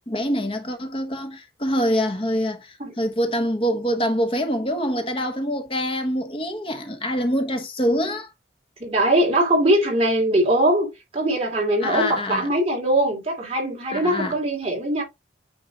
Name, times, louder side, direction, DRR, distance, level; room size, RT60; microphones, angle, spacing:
voice 1, 0.1-8.3 11.8-12.5 13.9-14.4, equal, 30° left, 1.2 m, -25 dB
voice 2, 8.8-15.0, right 1 dB, 35° right, 3.0 m, -21 dB
9.0 x 3.2 x 3.9 m
head